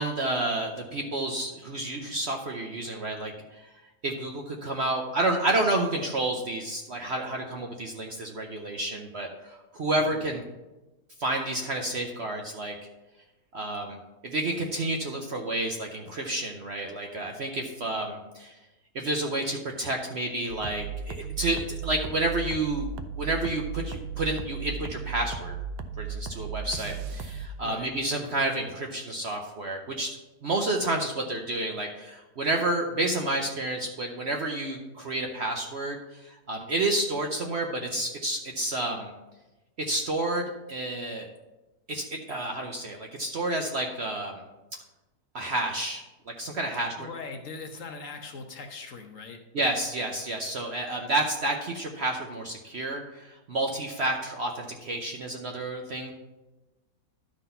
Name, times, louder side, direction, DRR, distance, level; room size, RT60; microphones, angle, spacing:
voice 1, 0.0-3.3 3.6-3.7 4.0-10.4 11.2-12.7 13.5-14.0 14.2-18.5 18.9-22.9 23.2-25.5 26.0-30.2 30.4-36.0 36.5-39.1 39.8-41.3 41.9-44.3 45.3-46.0 46.4-47.1 49.5-56.1, right 2 dB, 55° right, 2 dB, 0.8 m, -30 dB
sound 1, 20.5-27.5, right 6 dB, 80° right, 1.2 m, -36 dB
voice 2, 46.7-49.4, left 4 dB, 55° left, 4 dB, 1.1 m, -41 dB
11.5 x 3.9 x 5.5 m, 1.1 s
omnidirectional pair, 1.8 m